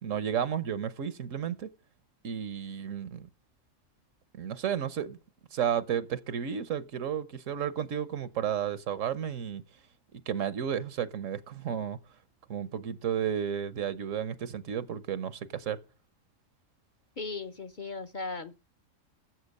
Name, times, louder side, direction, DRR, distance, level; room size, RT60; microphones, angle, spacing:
voice 1, 0.0-1.7 2.2-3.3 4.3-5.2 5.5-9.6 10.3-12.0 12.5-15.8, right 8 dB, 75° right, 1.3 m, -32 dB
voice 2, 17.2-18.6, left 3 dB, 40° left, 1.0 m, -37 dB
16.0 x 7.9 x 6.6 m
omnidirectional pair, 1.3 m